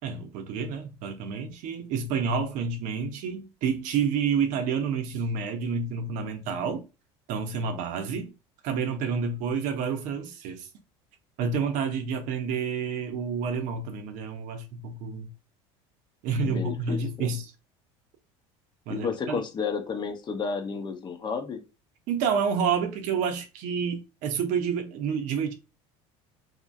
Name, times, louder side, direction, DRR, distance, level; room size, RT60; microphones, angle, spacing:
voice 1, 0.0-6.8 7.3-8.3 8.6-10.7 11.4-15.3 16.2-17.5 18.9-19.4 22.1-25.5, right 6 dB, 65° right, 0.7 m, -29 dB
voice 2, 16.4-17.3 18.9-21.6, left 5 dB, 30° left, 0.7 m, -32 dB
2.8 x 2.6 x 2.5 m
supercardioid pair, 105°, 14 cm